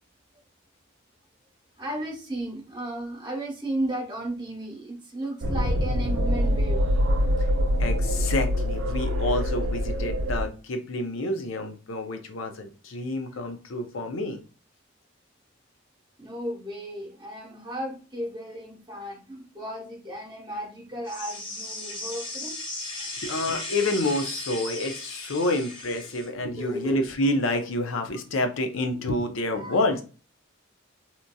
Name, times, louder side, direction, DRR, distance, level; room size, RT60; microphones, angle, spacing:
voice 1, 1.8-6.9 16.2-22.6 26.6-27.1 29.6-29.8, right 1 dB, 20° right, 0.9 m, -34 dB
sound 1, 5.4-10.5, equal, 65° right, 0.5 m, -24 dB
voice 2, 7.8-14.4 23.2-30.0, left 1 dB, 85° left, 0.6 m, -28 dB
sound 2, 21.1-26.3, left 2 dB, 25° left, 0.6 m, -36 dB
2.9 x 2.6 x 2.2 m
head